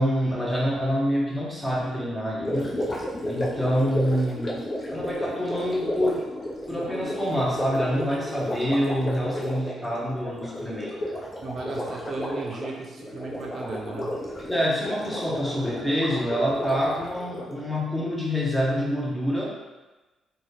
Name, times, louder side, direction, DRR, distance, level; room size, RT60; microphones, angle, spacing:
voice 1, 0.0-2.7 3.3-6.2 6.7-11.0 14.4-19.5, equal, 5° left, -3 dB, 0.9 m, -26 dB
Gurgling, 2.4-17.6, left 1 dB, 40° left, 0.9 m, -32 dB
voice 2, 11.4-14.2, right 4 dB, 50° right, 0 dB, 0.5 m, -36 dB
3.9 x 2.3 x 3.2 m, 1.1 s
cardioid pair, 90°, 0 cm